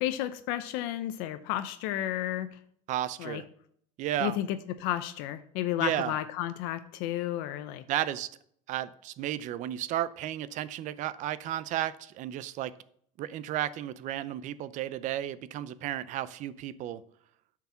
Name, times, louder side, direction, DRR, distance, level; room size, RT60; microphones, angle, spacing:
voice 1, 0.0-2.6 3.2-3.4 4.2-7.8, left 13 dB, 70° left, 11 dB, 0.7 m, -32 dB
voice 2, 2.9-3.4 4.0-4.4 5.8-6.1 7.9-8.3 8.7-12.7 13.2-17.0, right 12 dB, 50° right, 16 dB, 0.6 m, -33 dB
9.5 x 4.7 x 6.9 m, 0.66 s
cardioid pair, 130°, 17 cm